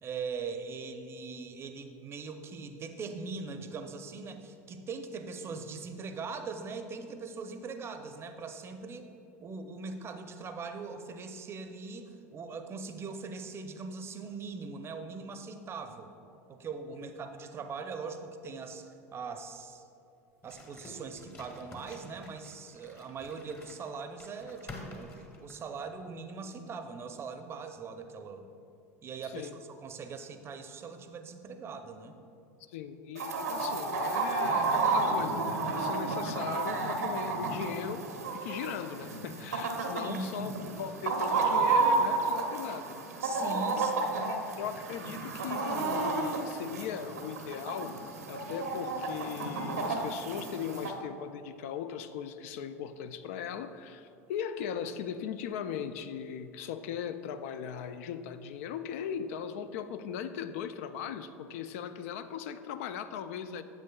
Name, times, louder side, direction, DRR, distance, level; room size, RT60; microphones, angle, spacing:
voice 1, 0.0-9.1 9.4-16.1 16.5-19.8 20.4-28.5 29.0-29.5 29.8-32.2 40.0-40.5 43.2-44.4, right 4 dB, 30° right, 7 dB, 0.6 m, -41 dB
sound 1, 20.4-25.9, left 2 dB, 30° left, 1.3 m, -49 dB
voice 2, 32.7-38.0 38.3-43.0 43.7-43.8 44.3-48.0 48.3-63.6, left 8 dB, 65° left, 11 dB, 0.4 m, -39 dB
Chicken rooster, 33.2-50.9, right 3 dB, 85° right, 0.8 m, -31 dB
9.3 x 7.5 x 2.3 m, 2.7 s
hypercardioid pair, 80°, 8 cm